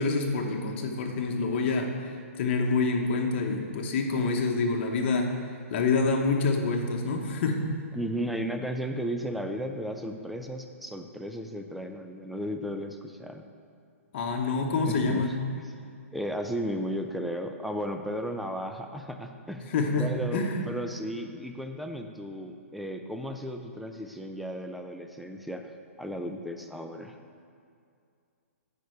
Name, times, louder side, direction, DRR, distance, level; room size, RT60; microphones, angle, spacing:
voice 1, 0.0-5.3 5.7-7.7 14.1-15.3 19.7-20.1 20.3-20.7, left 3 dB, 45° left, 3 dB, 1.0 m, -27 dB
voice 2, 7.9-13.4 14.8-15.3 16.1-19.7 20.0-25.7 26.0-27.2, equal, ahead, 5 dB, 0.4 m, -34 dB
9.1 x 5.3 x 4.6 m, 2.4 s
hypercardioid pair, 135°, 8 cm